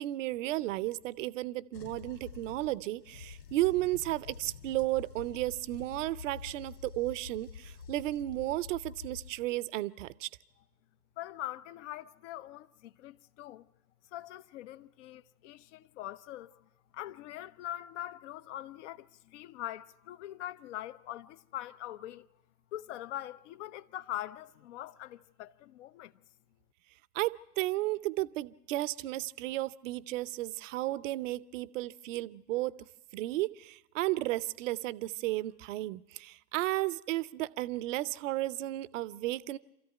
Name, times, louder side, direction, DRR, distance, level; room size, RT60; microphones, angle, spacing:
voice 1, 0.0-10.3 27.1-32.7 33.1-39.6, right 17 dB, 50° right, 0.7 m, -33 dB
sound 1, 1.7-9.7 10.0-10.2, left 6 dB, 80° left, 1.1 m, -48 dB
voice 2, 11.2-13.7 14.1-16.6 16.9-22.3 22.7-26.1, left 13 dB, 45° left, 0.8 m, -43 dB
27.5 x 14.0 x 9.2 m
figure-of-eight pair, 100°, 49 cm